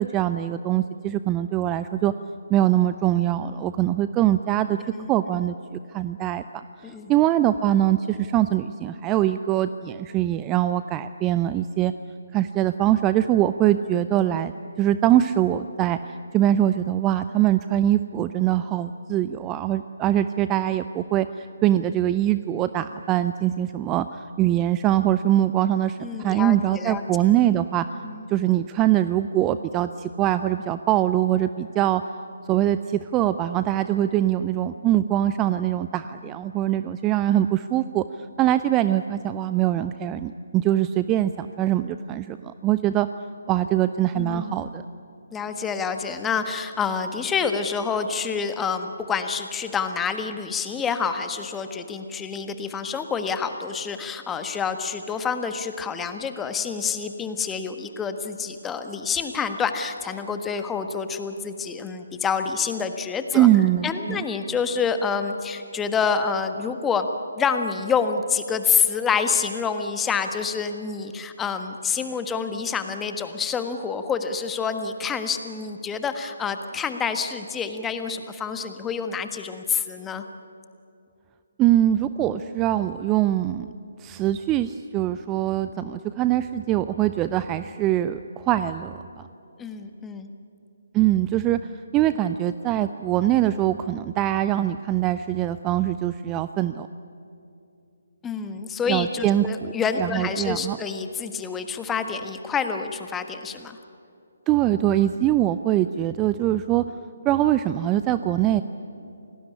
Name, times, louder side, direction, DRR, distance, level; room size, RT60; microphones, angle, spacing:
voice 1, 0.0-2.1 2.5-4.8 5.1-11.9 12.3-16.0 16.3-27.9 28.3-32.0 32.5-38.0 38.4-43.1 43.5-44.8 63.3-64.2 81.6-83.7 84.0-89.0 90.9-91.6 91.9-96.9 98.9-99.7 100.0-100.8 104.5-106.8 107.2-108.6, right 12 dB, 20° right, 12 dB, 0.5 m, -23 dB
voice 2, 5.0-5.4 6.8-7.1 26.0-27.0 28.0-28.2 44.1-44.7 45.3-63.5 63.8-67.1 67.4-80.2 89.6-90.3 98.2-103.8, left 6 dB, 10° left, 8 dB, 1.5 m, -27 dB
28.0 x 19.0 x 9.9 m, 2.7 s
figure-of-eight pair, 140°, 0 cm